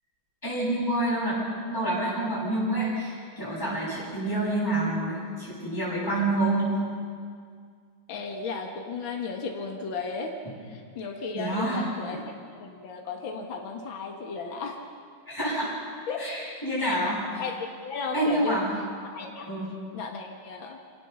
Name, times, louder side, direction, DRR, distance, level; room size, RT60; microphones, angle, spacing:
voice 1, 0.4-6.7 11.3-11.8 15.3-15.7 16.2-17.4 18.1-18.7 19.5-19.7, right 1 dB, 10° left, -8 dB, 7.7 m, -28 dB
voice 2, 8.1-14.8 16.1-16.5 16.8-17.0 17.4-18.6 19.0-19.5 19.9-20.8, left 4 dB, 70° left, 2 dB, 2.3 m, -35 dB
26.0 x 17.5 x 7.1 m, 2.1 s
omnidirectional pair, 2.3 m